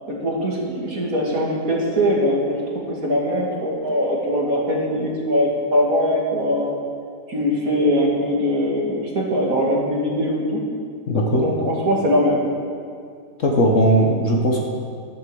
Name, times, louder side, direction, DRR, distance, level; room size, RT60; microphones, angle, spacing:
voice 1, 0.1-6.8 7.3-10.6 11.4-12.4, equal, 55° right, -2 dB, 2.4 m, -21 dB
voice 2, 11.1-11.4 13.4-14.6, equal, 50° left, 0 dB, 1.5 m, -18 dB
13.0 x 7.6 x 7.0 m, 2.3 s
omnidirectional pair, 1.9 m